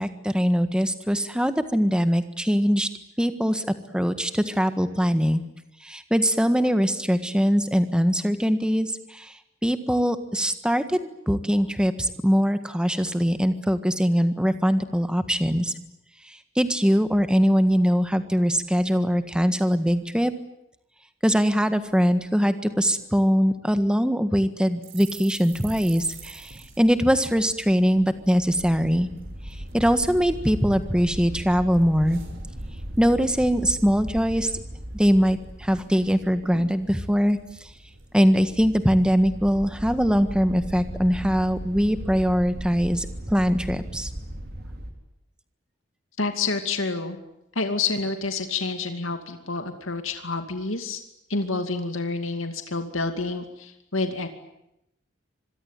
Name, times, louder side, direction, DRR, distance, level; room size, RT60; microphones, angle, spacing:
voice 1, 0.0-2.9 3.2-3.7 3.9-5.4 5.8-15.7 16.3-20.3 21.2-29.1 29.7-32.2 33.0-34.5 34.9-37.7 38.1-44.1, equal, 5° right, 9 dB, 1.6 m, -22 dB
sound 1, 24.8-28.4 28.7-28.9 29.2-29.8 30.3-31.1 31.4-33.1 33.4-33.6 33.9-34.4 34.8-34.9 35.2-35.9 36.1-36.2 36.4-38.3 38.8-39.1, right 7 dB, 85° right, 6.4 m, -48 dB
sound 2, 25.5-44.9, equal, 50° right, 4.3 m, -38 dB
voice 2, 46.2-47.2 47.6-51.0 51.3-54.3, left 3 dB, 85° left, 7 dB, 2.5 m, -28 dB
26.0 x 22.0 x 9.2 m, 0.83 s
head